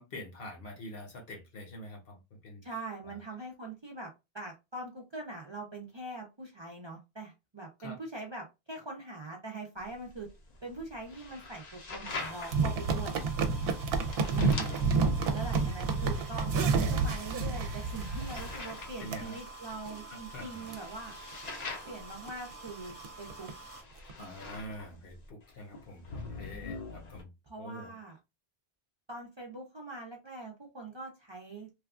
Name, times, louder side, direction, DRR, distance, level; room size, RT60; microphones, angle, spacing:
voice 1, 0.0-2.6 3.0-3.2 7.8-8.0 14.4-15.0 19.0-19.4 20.1-20.7 24.1-27.3 27.6-28.0, left 1 dB, 65° left, 1.1 m, -45 dB
voice 2, 2.6-10.3 10.6-13.7 14.1-15.0 15.3-16.5 16.8-21.2 21.9-23.5 27.5-28.2 29.1-31.7, right 2 dB, 35° right, 0.5 m, -43 dB
sound 1, 9.8-27.2, left 3 dB, 45° left, 0.6 m, -45 dB
sound 2, 12.1-23.8, right 3 dB, 15° left, 0.8 m, -48 dB
sound 3, 12.5-18.7 19.1-19.2 19.7-19.9 20.3-20.4 20.7-20.8 21.3-21.5 21.9-22.0 22.3-22.4 22.7-23.5 24.1-24.2, right 4 dB, 70° right, 0.8 m, -29 dB
3.2 x 2.3 x 2.4 m
omnidirectional pair, 1.1 m